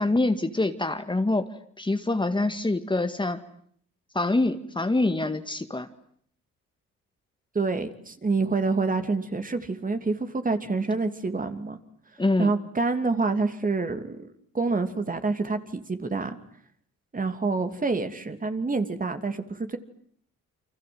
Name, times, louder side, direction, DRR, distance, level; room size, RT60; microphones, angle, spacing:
voice 1, 0.0-1.5 1.8-3.4 4.2-5.9 12.2-12.5, left 2 dB, 15° left, 8 dB, 2.0 m, -25 dB
voice 2, 7.5-11.8 12.4-14.2 14.5-16.4 17.1-19.8, right 3 dB, 25° right, 8 dB, 2.8 m, -27 dB
29.5 x 25.5 x 7.9 m, 0.63 s
cardioid pair, 90°, 30 cm